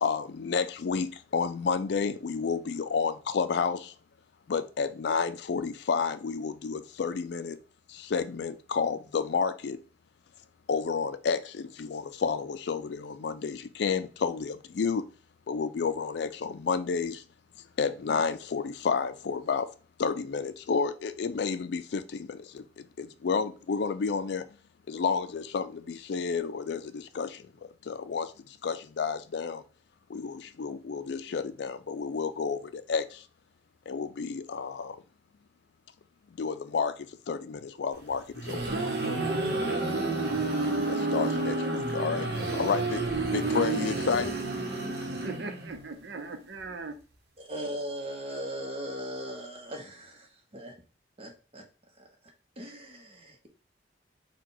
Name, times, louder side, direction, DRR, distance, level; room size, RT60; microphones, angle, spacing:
voice 1, 0.0-3.9 4.5-7.6 7.9-9.8 10.7-15.0 15.5-17.2 17.8-19.7 20.0-24.4 24.9-29.6 30.1-33.3 33.9-35.0 36.4-38.6 40.9-42.3 42.5-44.4, left 5 dB, 65° left, 0.4 m, -31 dB
sound 1, 38.1-45.8, right 2 dB, 55° right, 1.0 m, -30 dB
voice 2, 45.2-46.9, right 3 dB, 75° right, 0.7 m, -39 dB
voice 3, 47.4-50.7 51.2-51.7 52.0-52.1 52.6-53.5, equal, 30° right, 0.9 m, -39 dB
4.5 x 2.3 x 3.8 m
head